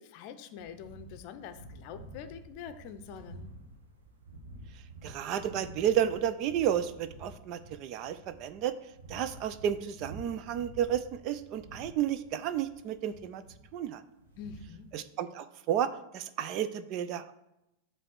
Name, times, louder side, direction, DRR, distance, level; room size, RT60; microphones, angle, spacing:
voice 1, 0.0-3.5 14.4-14.9, left 7 dB, 45° left, 10 dB, 0.6 m, -45 dB
sound 1, 0.6-14.9, right 1 dB, 65° right, 1.1 m, -50 dB
voice 2, 5.0-8.7 9.1-13.4 13.7-14.0 14.9-17.3, right 10 dB, 40° right, 13 dB, 0.4 m, -32 dB
7.5 x 3.3 x 6.2 m, 0.88 s
figure-of-eight pair, 90°, 0 cm